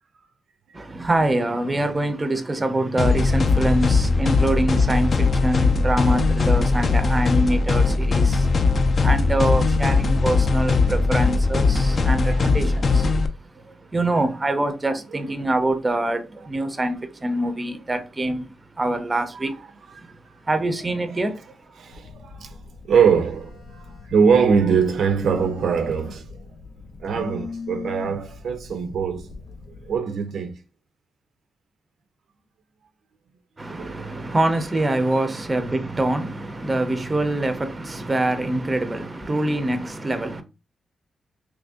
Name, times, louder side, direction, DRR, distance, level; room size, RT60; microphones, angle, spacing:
voice 1, 0.7-8.6 9.0-13.1 13.6-13.7 13.9-19.6 20.0-20.2 20.4-21.4 33.6-40.4, right 1 dB, 20° right, 0.5 m, -25 dB
sound 1, 3.0-13.3, left 4 dB, 40° left, 0.4 m, -19 dB
voice 2, 11.8-12.7 13.7-13.8 15.1-15.5 19.3-19.5 19.9-20.4 21.1-21.2 21.8-26.4 27.0-29.3 29.8-30.6 33.7-34.3, right 6 dB, 70° right, 0.5 m, -23 dB
Telephone, 21.9-30.0, left 4 dB, 85° left, 0.9 m, -40 dB
3.0 x 2.5 x 3.5 m
wide cardioid pair, 140°, 0 cm